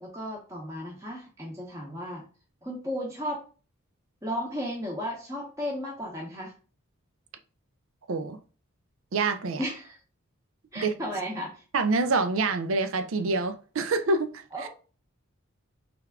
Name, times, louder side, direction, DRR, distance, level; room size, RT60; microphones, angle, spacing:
voice 1, 0.0-2.2 2.6-3.4 4.2-6.5 9.6-10.0 10.7-11.6 14.5-14.7, equal, 15° right, 0.9 m, -34 dB
voice 2, 8.1-8.4 9.1-9.6 10.8-10.9 11.7-14.3 14.6-14.7, right 3 dB, 70° right, 0.5 m, -26 dB
3.5 x 3.4 x 3.5 m
head